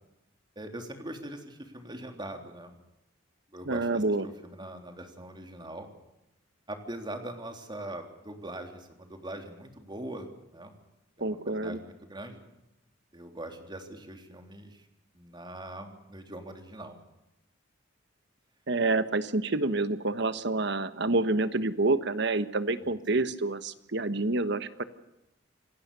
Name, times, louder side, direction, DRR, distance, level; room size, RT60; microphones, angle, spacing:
voice 1, 0.5-2.7 3.5-5.9 6.7-10.7 11.2-12.4 13.1-14.9 15.1-17.0 22.8-23.0, right 1 dB, 25° right, 4 dB, 3.4 m, -42 dB
voice 2, 3.6-4.3 11.2-11.8 18.7-24.8, right 2 dB, 65° right, 12 dB, 1.3 m, -28 dB
27.5 x 18.5 x 6.9 m, 0.94 s
head